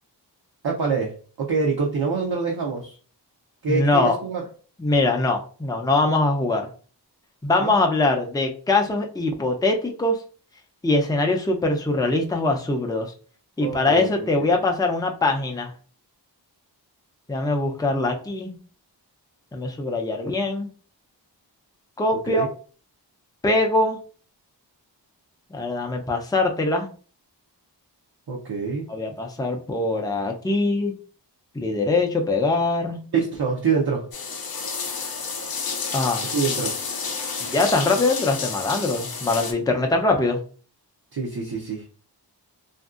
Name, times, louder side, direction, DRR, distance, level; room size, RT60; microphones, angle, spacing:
voice 1, 0.6-3.0 3.6-4.4 7.6-7.8 13.6-14.6 22.2-22.5 28.3-28.9 33.1-34.1 36.3-36.8 41.1-41.8, right 5 dB, 60° right, -1 dB, 0.6 m, -26 dB
voice 2, 3.7-4.2 4.8-6.7 7.4-10.2 10.8-13.1 13.6-15.7 17.3-18.5 19.5-20.7 22.0-22.5 23.4-24.0 25.5-26.9 28.9-30.9 31.5-33.0 35.9-36.3 37.4-40.4, left 2 dB, 10° left, 3 dB, 0.4 m, -22 dB
sound 1, 34.1-39.5, left 5 dB, 55° left, 0.5 m, -30 dB
2.8 x 2.6 x 2.4 m, 0.40 s
wide cardioid pair, 60°, 43 cm